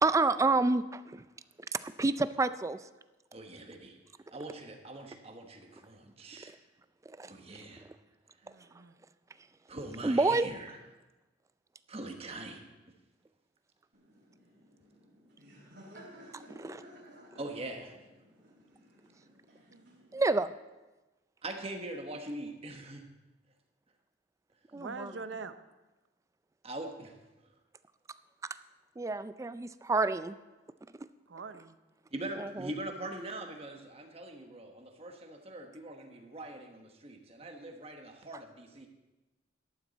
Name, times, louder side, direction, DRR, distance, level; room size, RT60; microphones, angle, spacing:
voice 1, 0.0-1.2 1.7-2.9 6.4-6.6 7.1-7.3 7.8-8.0 10.0-10.5 16.3-16.8 20.1-20.5 24.7-25.1 29.0-30.4 31.0-31.1 32.4-32.7, right 3 dB, 15° right, 13 dB, 0.3 m, -29 dB
voice 2, 3.3-4.0 4.3-6.5 7.2-7.8 9.7-10.8 11.9-12.6 17.4-18.0 21.4-23.0 26.6-27.1 32.1-38.9, right 1 dB, 35° right, 4 dB, 1.2 m, -42 dB
voice 3, 8.4-9.0 19.7-20.2 24.7-25.5 31.3-31.8, right 4 dB, 80° right, 11 dB, 0.7 m, -44 dB
Laughter, 13.9-20.2, equal, 60° right, 3.7 m, -55 dB
12.5 x 11.5 x 4.1 m, 1.1 s
head